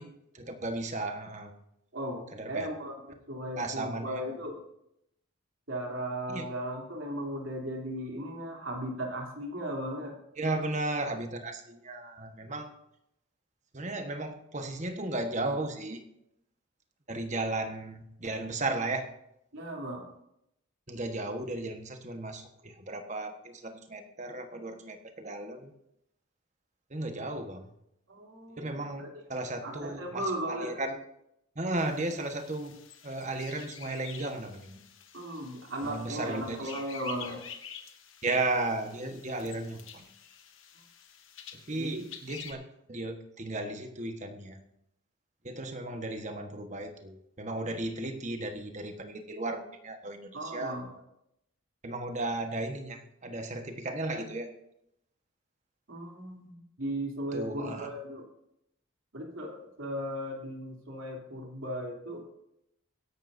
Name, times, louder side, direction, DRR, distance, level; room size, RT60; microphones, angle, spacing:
voice 1, 0.0-1.5 2.3-2.7 3.6-4.1 6.3-6.4 10.4-12.7 13.7-16.0 17.1-19.0 20.9-25.7 26.9-27.7 28.6-29.0 29.3-30.9 31.6-32.7 33.0-34.8 35.8-36.7 38.2-40.1 41.7-42.6 42.9-44.6 45.4-50.7 51.8-54.5 57.3-57.9, right 2 dB, 35° right, 5 dB, 1.4 m, -35 dB
voice 2, 1.9-4.6 5.7-10.2 19.5-20.0 28.1-29.1 29.6-30.7 35.1-37.4 41.7-42.1 47.6-47.8 50.3-50.9 55.9-58.2 59.1-62.2, right 1 dB, 70° right, 0 dB, 3.2 m, -37 dB
sound 1, 31.8-42.5, left 8 dB, 70° left, 1.6 m, -49 dB
23.0 x 11.0 x 2.7 m, 0.79 s
head